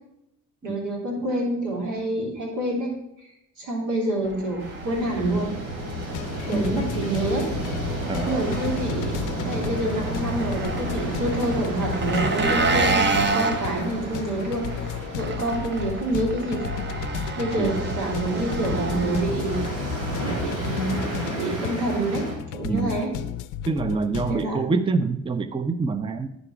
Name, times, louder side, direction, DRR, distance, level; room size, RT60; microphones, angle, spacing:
voice 1, 0.6-2.9 3.2-3.3 3.6-5.5 6.5-7.5 8.1-16.8 17.3-19.9 20.2-22.3 22.5-23.1 24.3-24.6, right 1 dB, 85° right, -1 dB, 3.0 m, -27 dB
Engine, 4.3-20.1, right 4 dB, 35° right, 1.0 m, -30 dB
sound 1, 4.6-22.4, right 1 dB, 60° right, 3.0 m, -32 dB
sound 2, 5.8-24.5, left 10 dB, 90° left, 0.5 m, -34 dB
voice 2, 8.1-8.5 17.6-17.8 22.6-23.0 23.7-26.4, right 4 dB, 15° right, 11 dB, 0.5 m, -26 dB
11.0 x 5.0 x 4.9 m, 0.82 s
cardioid pair, 90°, 30 cm